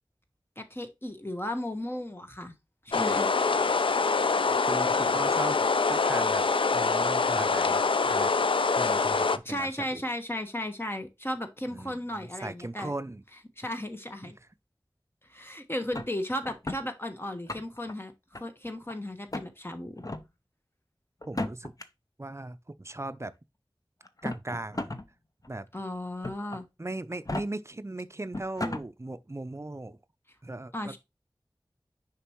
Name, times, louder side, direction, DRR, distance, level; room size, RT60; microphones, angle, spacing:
voice 1, 0.6-2.5 2.8-3.3 8.5-8.7 9.4-12.9 13.6-14.4 15.3-20.0 25.7-26.7 30.7-31.0, left 1 dB, 25° left, 1.3 m, -35 dB
sound 1, 2.9-9.4, left 4 dB, 80° left, 0.4 m, -25 dB
voice 2, 4.5-5.6 5.9-8.3 8.8-10.0 11.7-13.2 14.2-14.3 21.2-21.7 22.2-23.3 24.2-24.9 25.5-25.7 26.8-30.0 30.4-31.0, right 2 dB, 30° right, 0.5 m, -38 dB
sound 2, 15.9-16.8 17.3-17.9 18.3-18.9 19.3-19.5 20.0-20.2 21.2-21.8 22.9-23.0 24.0-25.0 25.4-25.5 26.2-26.6 27.1-27.4 28.0-28.1 28.3-28.8, left 2 dB, 45° left, 0.7 m, -34 dB
6.7 x 5.2 x 3.0 m
wide cardioid pair, 50°, 9 cm